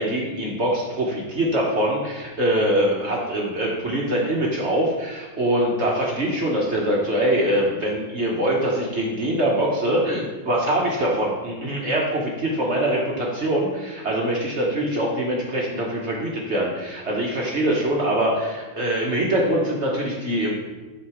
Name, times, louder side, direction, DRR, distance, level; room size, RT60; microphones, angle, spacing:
voice 1, 0.0-20.6, right 1 dB, 50° right, -2 dB, 0.9 m, -23 dB
7.4 x 3.9 x 4.8 m, 1.2 s
omnidirectional pair, 2.3 m